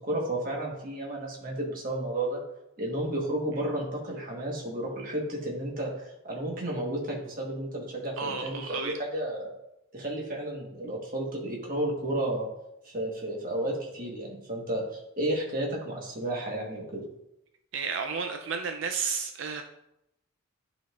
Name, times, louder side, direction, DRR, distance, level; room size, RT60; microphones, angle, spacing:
voice 1, 0.0-2.4 2.8-9.5 9.9-12.5 12.8-17.0, right 1 dB, 40° right, -2 dB, 1.3 m, -32 dB
voice 2, 8.2-8.9 17.7-19.6, right 5 dB, 60° right, 5 dB, 0.4 m, -32 dB
10.5 x 3.9 x 2.4 m, 0.85 s
head